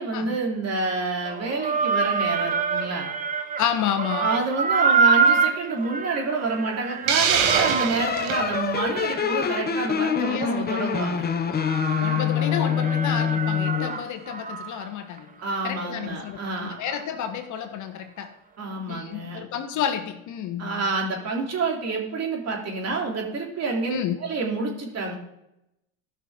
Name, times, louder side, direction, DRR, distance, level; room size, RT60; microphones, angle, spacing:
voice 1, 0.0-3.1 4.2-11.2 15.4-17.0 18.6-19.4 20.6-25.1, right 3 dB, 40° right, 0 dB, 3.1 m, -28 dB
sound 1, 1.2-3.7 4.0-11.1 11.6-14.9 15.2-15.3 15.8-15.9, right 5 dB, 20° right, 1.1 m, -26 dB
voice 2, 3.6-4.3 10.2-10.7 11.5-15.3 15.6-18.3 18.9-20.8 23.9-24.2, left 9 dB, 50° left, 8 dB, 1.2 m, -30 dB
Hiss, 7.1-8.4, right 7 dB, 80° right, 1.5 m, -23 dB
sound 2, 8.0-14.0, left 7 dB, 25° left, 0.8 m, -25 dB
15.5 x 5.9 x 3.6 m, 0.84 s
supercardioid pair, 95°, 39 cm